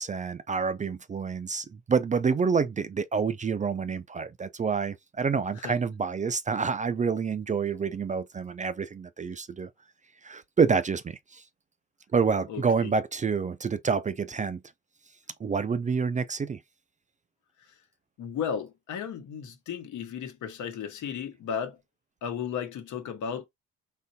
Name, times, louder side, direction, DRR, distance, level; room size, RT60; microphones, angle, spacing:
voice 1, 0.0-9.7 10.2-11.4 12.1-14.6 15.4-16.6, right 5 dB, 25° right, 0.4 m, -28 dB
voice 2, 12.5-12.9 18.2-21.8 22.2-23.5, left 7 dB, 75° left, 1.0 m, -34 dB
3.9 x 3.2 x 2.7 m
cardioid pair, 90°, 30 cm